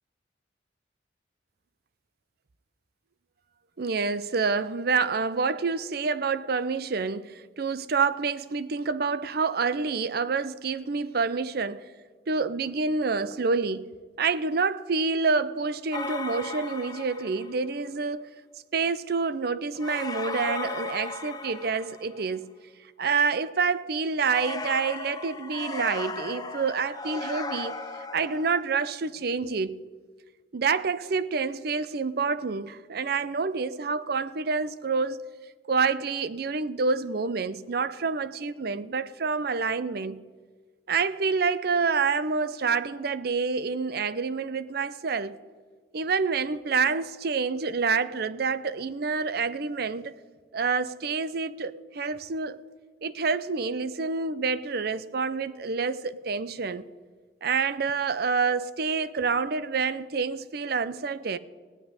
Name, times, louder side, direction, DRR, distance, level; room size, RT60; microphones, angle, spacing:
voice 1, 3.8-11.8 12.3-13.9 14.2-18.3 18.7-22.5 23.0-27.8 28.1-29.8 30.5-35.2 35.7-40.2 40.9-45.4 45.9-50.2 50.5-52.6 53.0-56.9 57.4-61.4, right 4 dB, 60° right, 0.6 m, -27 dB
sound 1, 15.9-17.7 19.8-22.3 24.2-28.6, left 3 dB, 20° left, 0.8 m, -36 dB
17.5 x 6.1 x 9.6 m
head